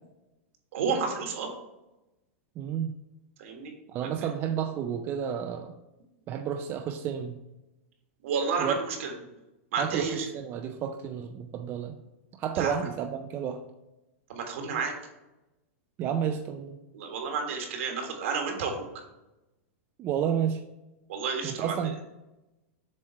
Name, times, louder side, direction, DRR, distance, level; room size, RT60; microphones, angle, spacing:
voice 1, 0.7-1.5 3.4-3.7 4.0-4.1 8.2-9.1 9.7-10.3 12.5-12.7 14.3-14.9 16.9-18.8 21.1-21.9, right 5 dB, 70° right, 3 dB, 1.6 m, -31 dB
voice 2, 2.6-2.9 3.9-5.7 6.3-7.4 8.6-8.8 9.8-12.0 12.4-13.6 16.0-16.8 20.0-20.6 21.4-21.9, right 8 dB, 30° right, 5 dB, 0.4 m, -31 dB
7.3 x 3.2 x 4.4 m, 0.98 s
supercardioid pair, 135°, 7 cm